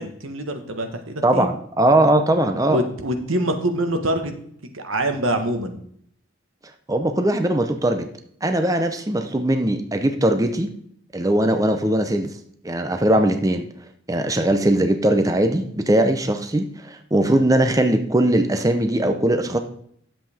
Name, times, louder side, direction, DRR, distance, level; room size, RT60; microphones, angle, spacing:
voice 1, 0.0-1.5 2.7-4.3 4.7-5.8, right 1 dB, 85° right, 6 dB, 1.4 m, -25 dB
voice 2, 1.2-2.8 6.9-8.1 8.4-10.7 11.1-12.3 12.6-13.7 14.1-19.6, right 1 dB, 15° right, 6 dB, 0.6 m, -20 dB
11.0 x 7.6 x 3.6 m, 0.66 s
head